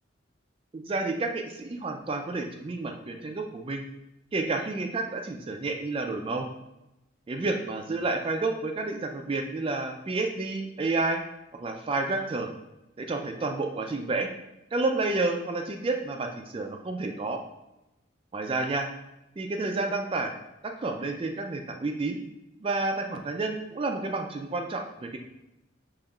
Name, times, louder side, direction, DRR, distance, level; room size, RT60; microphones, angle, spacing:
voice 1, 0.7-3.8 4.3-6.5 7.3-11.2 11.6-12.5 13.0-14.3 14.7-17.4 18.3-18.9 19.4-20.3 20.6-22.2 22.6-25.2, right 3 dB, 25° right, 4 dB, 0.3 m, -30 dB
5.3 x 3.2 x 2.3 m, 0.92 s
head